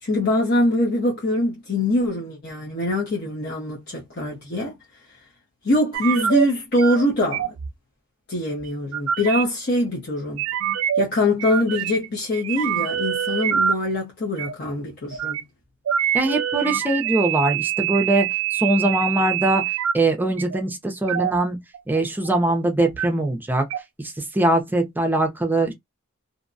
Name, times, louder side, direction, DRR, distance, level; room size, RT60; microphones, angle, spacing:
voice 1, 0.0-4.7 5.1-5.2 5.6-7.5 8.3-10.5 11.0-15.4, left 1 dB, 50° left, 0.7 m, -23 dB
sound 1, 5.9-6.5 6.8-7.0 7.3-7.7 8.6-9.4 10.4-11.0 11.4-12.1 12.3-13.7 14.4-14.5 15.1-15.4 15.9-19.9 20.4-20.6 21.1-21.4 21.7-22.5 22.8-23.1 23.7-23.8, right 9 dB, 75° right, 0.3 m, -25 dB
voice 2, 16.1-19.6 19.9-21.6 21.9-23.7 24.3-25.7, right 2 dB, 10° right, 0.5 m, -22 dB
2.6 x 2.1 x 2.6 m
head